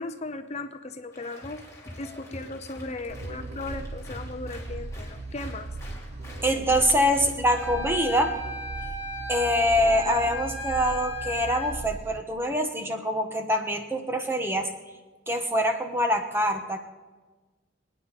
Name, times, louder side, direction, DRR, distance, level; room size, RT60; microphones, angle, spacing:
voice 1, 0.0-1.6 1.9-5.7, left 2 dB, 35° left, 8 dB, 0.7 m, -37 dB
Applause, 1.1-7.8, equal, 15° left, 2.6 m, -44 dB
sound 1, 3.1-12.2, right 2 dB, 35° right, 0.5 m, -39 dB
voice 2, 6.4-8.3 9.3-14.7 15.3-16.8, equal, 15° right, 5 dB, 1.2 m, -24 dB
Wind instrument woodwind instrument, 7.5-11.7, left 1 dB, 60° right, 4.4 m, -36 dB
25.5 x 9.5 x 4.1 m, 1.3 s
head